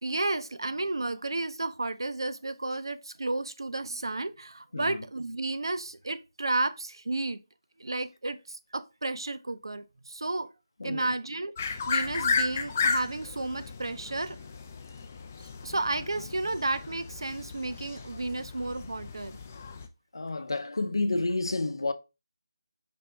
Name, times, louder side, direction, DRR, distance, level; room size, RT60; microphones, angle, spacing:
voice 1, 0.0-7.4 7.8-10.5 10.8-14.4 15.6-19.4, right 2 dB, 75° right, 0.6 m, -32 dB
voice 2, 4.7-5.0 10.8-11.1 20.1-21.9, left 2 dB, 75° left, 0.7 m, -30 dB
sound 1, 11.6-19.9, left 5 dB, 25° left, 0.4 m, -34 dB
5.2 x 2.8 x 3.4 m
figure-of-eight pair, 170°, 2 cm